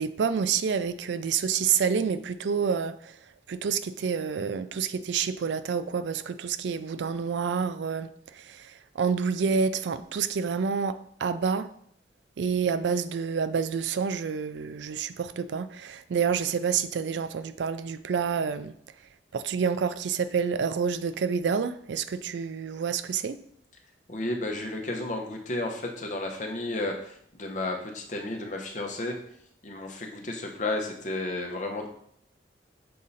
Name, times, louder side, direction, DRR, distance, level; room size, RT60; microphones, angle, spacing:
voice 1, 0.0-3.2 3.5-11.7 12.4-18.7 19.3-23.4, right 6 dB, 80° right, 0.4 m, -28 dB
voice 2, 24.1-29.2 29.6-31.9, left 2 dB, 45° left, 1.0 m, -32 dB
6.7 x 3.7 x 4.1 m
head